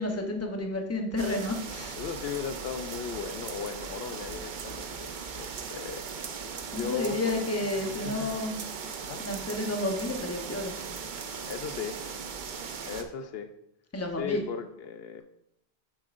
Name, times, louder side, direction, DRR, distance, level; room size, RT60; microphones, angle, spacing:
voice 1, 0.0-2.0 6.7-8.6 9.2-10.7 13.9-14.4, left 2 dB, 15° left, 3 dB, 0.8 m, -31 dB
sound 1, 1.2-13.0, right 5 dB, 55° right, 0.8 m, -38 dB
voice 2, 2.0-6.0 6.7-7.4 7.7-8.3 9.0-9.2 11.5-12.0 12.8-13.5 14.2-15.2, left 6 dB, 75° left, 9 dB, 0.8 m, -37 dB
9.1 x 7.4 x 2.5 m, 0.79 s
omnidirectional pair, 1.0 m